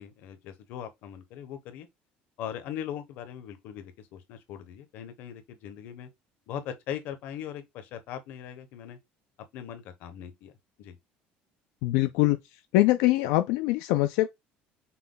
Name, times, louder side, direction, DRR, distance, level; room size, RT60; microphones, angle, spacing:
voice 1, 0.0-1.9 2.4-6.1 6.5-9.0 9.5-10.5 10.8-11.0, left 9 dB, 55° left, 0.9 m, -40 dB
voice 2, 11.8-12.4 12.7-14.3, left 17 dB, 85° left, 0.4 m, -23 dB
5.7 x 2.2 x 3.8 m
cardioid pair, 175°, 4 cm